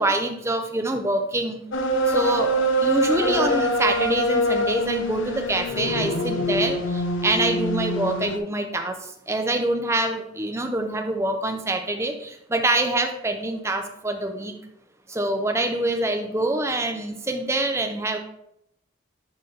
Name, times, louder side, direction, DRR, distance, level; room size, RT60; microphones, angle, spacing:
voice 1, 0.0-1.6 2.1-8.9 9.3-14.5 15.1-18.2, right 2 dB, 15° right, 5 dB, 0.7 m, -25 dB
sound 1, 1.7-8.4, equal, 75° left, 0.8 m, -24 dB
11.0 x 4.1 x 3.3 m, 0.76 s
head